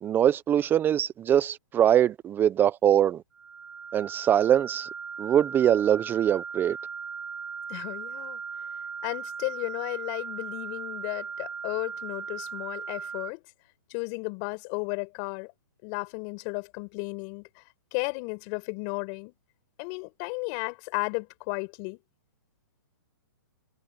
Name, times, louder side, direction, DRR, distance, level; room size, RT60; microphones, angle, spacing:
voice 1, 0.0-3.2 3.9-4.9 5.2-6.8, right 10 dB, 15° right, 0.8 m, -23 dB
sound 1, 3.3-13.3, right 6 dB, 80° right, 3.0 m, -38 dB
voice 2, 7.7-8.4 9.0-13.4 13.9-15.5 15.8-17.6 17.9-19.3 19.8-22.0, left 35 dB, 35° left, 5.0 m, -34 dB
hypercardioid pair, 140°, 12 cm